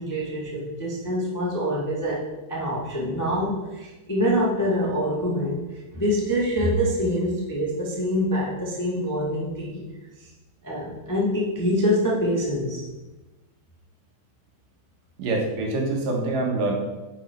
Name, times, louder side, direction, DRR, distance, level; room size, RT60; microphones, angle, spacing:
voice 1, 0.0-2.2 2.5-9.8 10.6-12.8, equal, 25° left, -5 dB, 0.3 m, -25 dB
voice 2, 15.2-16.7, right 2 dB, 70° right, 0 dB, 3.0 m, -25 dB
10.5 x 6.2 x 4.6 m, 1.1 s
omnidirectional pair, 4.2 m